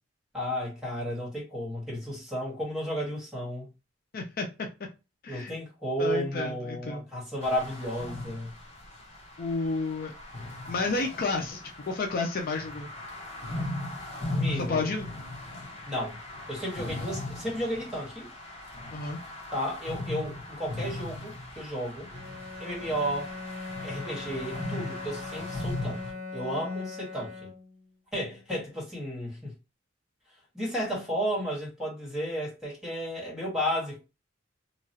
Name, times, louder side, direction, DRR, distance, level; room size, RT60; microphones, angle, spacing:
voice 1, 0.3-3.7 5.3-8.5 14.3-14.9 15.8-16.2 16.5-18.3 19.5-22.1 22.6-23.3 23.8-26.0 26.3-27.5 28.1-29.5 30.5-34.0, equal, 5° right, 1.6 m, -33 dB
voice 2, 4.1-4.5 5.2-5.5 6.0-7.1 9.4-10.1 10.7-11.6 11.9-12.9 14.5-15.1 18.9-19.2, left 3 dB, 50° left, 0.5 m, -31 dB
sound 1, 7.4-26.1, left 2 dB, 30° left, 1.1 m, -38 dB
Bowed string instrument, 22.1-27.9, left 3 dB, 55° right, 1.0 m, -41 dB
3.0 x 2.3 x 2.7 m
head